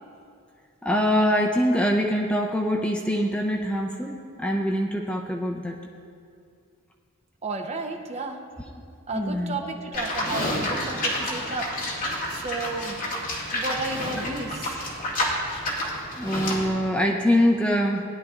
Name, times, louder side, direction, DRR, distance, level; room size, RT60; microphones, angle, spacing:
voice 1, 0.8-5.8 9.1-9.6 16.2-18.0, equal, 5° left, 1 dB, 0.5 m, -24 dB
voice 2, 7.4-8.4 9.1-11.7 12.3-13.0 13.5-14.8, right 3 dB, 30° right, 3 dB, 0.8 m, -32 dB
Livestock farm animals working animals, 9.9-16.7, left 1 dB, 40° left, 2.3 m, -29 dB
18.0 x 10.5 x 2.4 m, 2.4 s
head